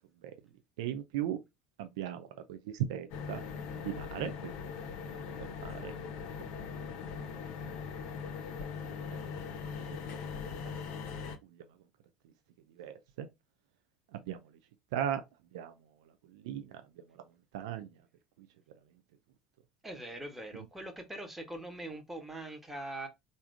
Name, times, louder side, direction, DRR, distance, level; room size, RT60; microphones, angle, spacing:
voice 1, 0.8-1.4 1.8-3.4 3.8-4.5 5.4-5.9 11.4-11.6 12.8-13.3 14.1-14.4 14.9-15.2 15.5-15.7 16.3-16.8 17.5-17.9 18.4-18.5 20.5-20.7, right 10 dB, 65° right, 0.4 m, -37 dB
sound 1, 3.1-11.4, left 6 dB, 55° left, 0.7 m, -40 dB
voice 2, 19.8-23.1, right 1 dB, 5° right, 1.1 m, -42 dB
3.4 x 2.6 x 3.3 m
figure-of-eight pair, 65°, 3 cm